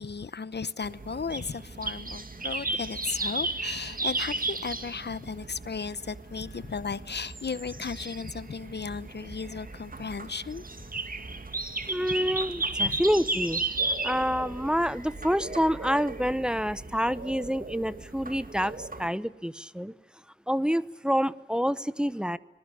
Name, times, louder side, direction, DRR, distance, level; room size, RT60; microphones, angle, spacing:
voice 1, 0.0-10.6 12.8-13.0, left 5 dB, 65° left, 0.8 m, -35 dB
sound 1, 0.8-19.1, right 2 dB, 50° right, 2.1 m, -35 dB
voice 2, 11.9-13.6 14.0-19.9 20.5-22.4, equal, 5° right, 0.9 m, -27 dB
25.5 x 20.5 x 10.0 m
wide cardioid pair, 65°, 19 cm